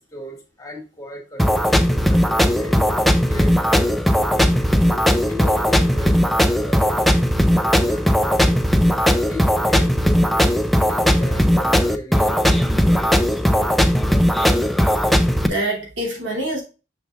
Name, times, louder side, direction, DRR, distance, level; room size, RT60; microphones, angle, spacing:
voice 1, 0.0-2.8 3.3-5.0 5.2-6.2 6.6-7.0 7.5-8.6 9.3-13.5, left 1 dB, 20° left, 0 dB, 1.9 m, -36 dB
sound 1, 1.4-15.5, equal, ahead, 0.5 m, -17 dB
voice 2, 15.1-16.6, right 1 dB, 80° right, -2 dB, 2.8 m, -26 dB
6.4 x 6.4 x 2.5 m, 0.30 s
head